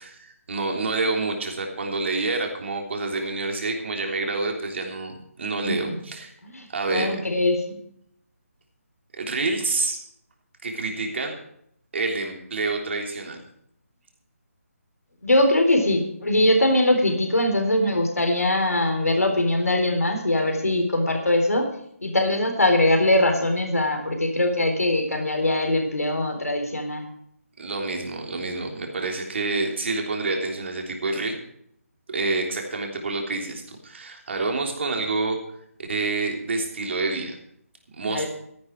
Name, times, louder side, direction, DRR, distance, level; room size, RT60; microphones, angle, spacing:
voice 1, 0.0-6.3 6.7-7.2 9.2-10.0 10.6-11.3 11.9-13.4 27.6-31.4 32.1-35.4 35.8-37.4 37.9-38.3, right 3 dB, 50° right, 2 dB, 3.4 m, -28 dB
voice 2, 6.9-7.8 15.2-21.7 22.0-27.1 38.1-38.3, left 1 dB, 85° left, 4 dB, 3.9 m, -21 dB
14.0 x 11.0 x 4.7 m, 0.71 s
figure-of-eight pair, 160°, 8 cm